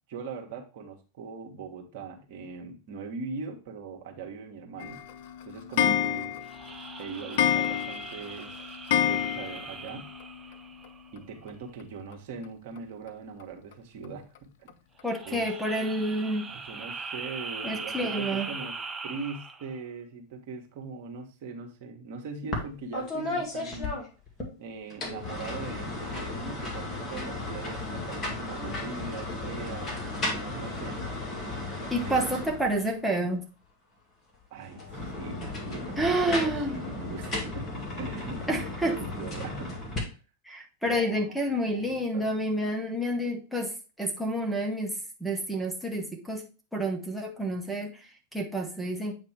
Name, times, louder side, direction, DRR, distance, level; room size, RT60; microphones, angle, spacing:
voice 1, 0.1-5.0 5.4-6.3 7.0-8.5 9.0-10.1 11.1-14.2 14.6-14.7 15.2-15.4 16.5-18.7 19.0-24.0 24.6-30.0 30.3-31.4 32.0-32.4 34.5-39.7 40.0-40.2 40.8-42.3, right 4 dB, 55° right, 2 dB, 1.5 m, -41 dB
Clock, 4.8-9.9 10.2-10.3 10.5-10.6 10.8-10.9 12.1-12.2 12.8-12.9 13.4-13.5 14.0-14.1 14.7-14.8 15.3-15.4, left 10 dB, 55° left, 0.5 m, -28 dB
sound 1, 6.5-11.2 15.0-19.8, right 4 dB, 15° right, 0.7 m, -40 dB
voice 2, 15.0-16.5 17.6-18.5 31.9-33.5 36.0-36.8 38.5-39.0 40.5-46.5 46.7-49.2, right 1 dB, ahead, -1 dB, 1.0 m, -29 dB
sound 2, 22.5-22.7 22.9-24.5 24.9-33.0 34.7-40.0, left 2 dB, 25° left, 2.0 m, -35 dB
8.3 x 2.9 x 4.6 m, 0.34 s
figure-of-eight pair, 90°, 0 cm